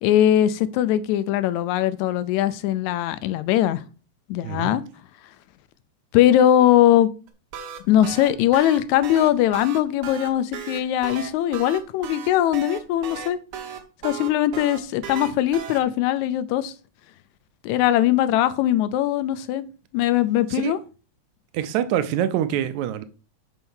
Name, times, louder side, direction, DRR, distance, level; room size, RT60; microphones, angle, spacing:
voice 1, 0.0-3.8 4.3-4.8 6.1-7.1 7.9-13.4 14.0-16.7 17.6-19.7 19.9-20.8, left 12 dB, 85° left, 1.9 m, -20 dB
voice 2, 4.4-4.8 20.5-20.7 21.5-23.0, right 10 dB, 80° right, 2.0 m, -25 dB
sound 1, 7.3-15.8, right 7 dB, 65° right, 1.5 m, -35 dB
6.2 x 4.4 x 5.5 m
omnidirectional pair, 3.3 m